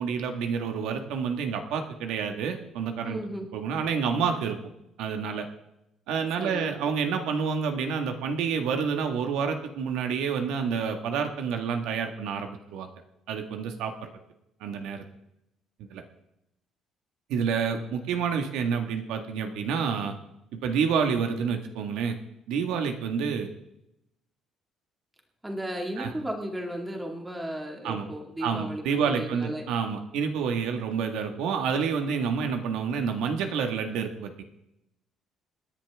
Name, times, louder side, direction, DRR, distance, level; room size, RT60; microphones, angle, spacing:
voice 1, 0.0-3.2 3.5-4.6 5.0-5.5 6.1-12.9 13.3-14.1 14.6-15.0 15.9-16.0 17.3-20.1 20.5-22.2 22.5-23.5 26.0-26.1 27.8-28.1 28.4-34.4, right 6 dB, 80° right, 5 dB, 1.8 m, -28 dB
voice 2, 3.0-3.5 6.4-6.7 25.4-29.6, equal, 10° right, 1 dB, 2.3 m, -35 dB
27.0 x 10.5 x 3.6 m, 0.85 s
cardioid pair, 175°, 0 cm